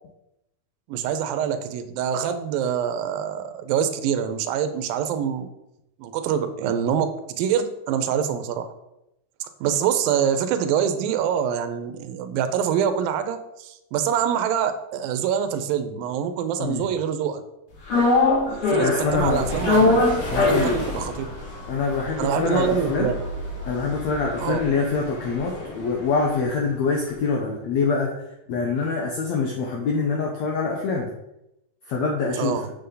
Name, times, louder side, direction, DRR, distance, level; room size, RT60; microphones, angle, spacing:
voice 1, 0.9-5.5 6.0-8.7 9.4-17.4 18.7-19.9 20.3-21.3 22.2-23.2 24.4-24.6 32.4-32.7, right 8 dB, 80° right, 9 dB, 2.4 m, -25 dB
sound 1, 17.9-26.2 26.5-26.6, left 2 dB, 60° left, 3.0 m, -24 dB
voice 2, 18.8-19.5 19.7-19.9 20.3-20.8 21.7-23.1 23.7-28.1 28.5-31.1 31.9-32.6, left 4 dB, 80° left, 0 dB, 1.6 m, -25 dB
7.3 x 6.9 x 3.9 m, 0.87 s
omnidirectional pair, 4.2 m